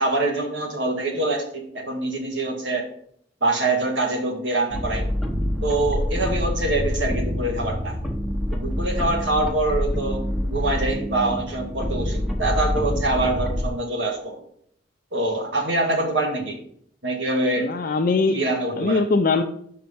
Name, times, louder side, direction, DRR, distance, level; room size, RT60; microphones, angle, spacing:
voice 1, 0.0-2.9 3.4-5.1 5.6-8.0 8.5-14.4 15.1-16.6 17.0-17.7 18.3-19.0, right 2 dB, 75° right, 2 dB, 1.6 m, -25 dB
sound 1, 4.7-13.7, equal, ahead, 0.9 m, -26 dB
voice 2, 17.6-18.4 18.8-19.4, left 3 dB, 50° left, 4 dB, 0.5 m, -21 dB
5.6 x 5.2 x 5.4 m, 0.64 s
head